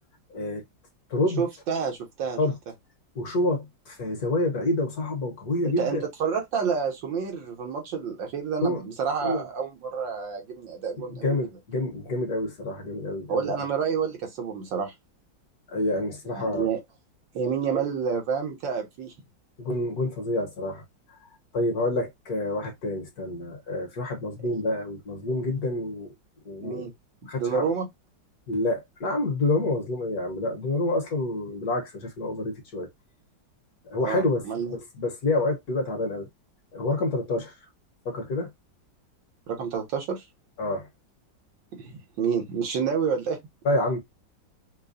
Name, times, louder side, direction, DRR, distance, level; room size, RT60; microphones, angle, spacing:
voice 1, 0.3-0.6 1.1-1.4 2.4-2.5 3.2-6.1 8.6-8.8 9.2-9.5 11.2-13.5 15.7-16.7 17.7-17.9 19.6-20.8 21.5-26.1 26.5-26.9 27.3-27.7 28.5-32.9 33.9-34.4 34.7-36.3 36.7-37.5 38.1-38.5 40.6-40.9 43.7-44.0, left 2 dB, 55° left, 1.6 m, -28 dB
voice 2, 1.4-2.4 5.6-11.4 13.3-14.9 16.3-16.8 17.3-19.1 26.6-26.9 27.4-27.9 34.0-34.8 39.5-40.2 41.7-43.4, right 6 dB, 80° right, 1.9 m, -29 dB
5.3 x 2.2 x 2.6 m
omnidirectional pair, 2.0 m